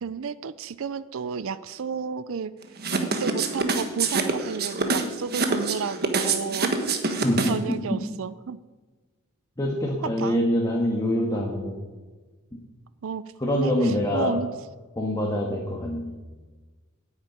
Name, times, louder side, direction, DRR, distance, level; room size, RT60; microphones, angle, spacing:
voice 1, 0.0-2.5 3.0-7.0 7.5-8.6 10.2-10.4 13.0-13.2 13.5-14.6, right 6 dB, 65° right, 15 dB, 0.4 m, -32 dB
sound 1, 2.8-7.7, right 4 dB, 45° right, 1.3 m, -25 dB
voice 2, 7.2-7.5 7.9-8.0 9.6-11.8 13.4-14.3 14.9-16.1, left 1 dB, 20° left, -1 dB, 1.6 m, -25 dB
9.9 x 8.9 x 9.1 m, 1.3 s
head